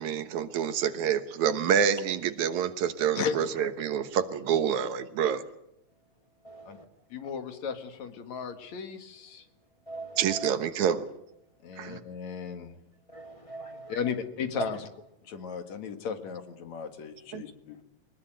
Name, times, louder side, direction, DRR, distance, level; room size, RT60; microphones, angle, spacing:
voice 1, 0.0-5.4 10.2-11.1 11.8-12.0 17.3-17.4, right 8 dB, 75° right, 11 dB, 2.6 m, -27 dB
voice 2, 3.2-3.5 6.7-6.8 7.1-9.4 11.6-12.7 13.9-14.9 15.3-17.8, left 6 dB, 70° left, 8 dB, 3.2 m, -35 dB
voice 3, 6.4-6.8 9.9-10.5 13.1-14.0 14.6-14.7, right 2 dB, 15° left, 6 dB, 1.2 m, -39 dB
22.5 x 20.5 x 9.2 m, 0.81 s
omnidirectional pair, 3.4 m